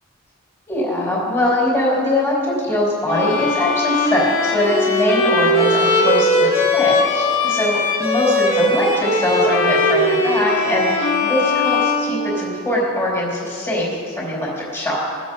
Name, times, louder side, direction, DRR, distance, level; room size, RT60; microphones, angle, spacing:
voice 1, 0.7-15.0, left 1 dB, 10° left, -5 dB, 3.3 m, -21 dB
Bowed string instrument, 3.1-12.8, left 2 dB, 85° left, 2.5 m, -19 dB
20.5 x 7.4 x 5.4 m, 2.3 s
head